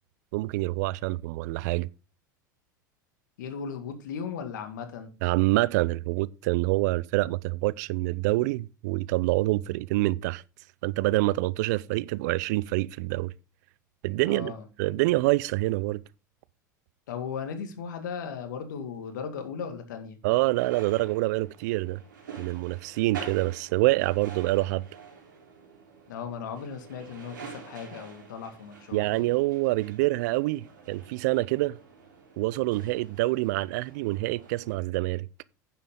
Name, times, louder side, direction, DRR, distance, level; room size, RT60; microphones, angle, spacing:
voice 1, 0.3-1.9 5.2-10.4 10.8-13.3 14.0-14.5 14.8-16.0 20.2-22.0 22.4-24.9 28.9-31.8 32.4-35.3, right 20 dB, 65° right, 0.5 m, -26 dB
voice 2, 3.4-5.1 14.2-14.6 17.1-20.2 26.1-29.3, left 6 dB, 75° left, 2.1 m, -37 dB
sound 1, 20.6-34.7, right 6 dB, 80° right, 3.8 m, -47 dB
10.5 x 7.5 x 3.8 m
hypercardioid pair, 85°, 10 cm